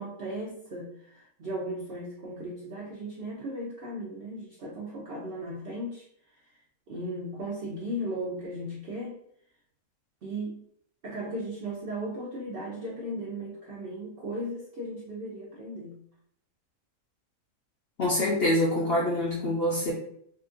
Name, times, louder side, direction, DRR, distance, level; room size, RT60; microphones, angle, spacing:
voice 1, 0.0-6.1 6.3-6.6 6.9-9.1 10.2-10.6 11.0-16.0, right 1 dB, 70° right, -4 dB, 0.5 m, -36 dB
voice 2, 18.0-19.9, left 1 dB, 60° left, -4 dB, 0.6 m, -25 dB
2.8 x 2.5 x 2.4 m, 0.68 s
omnidirectional pair, 1.6 m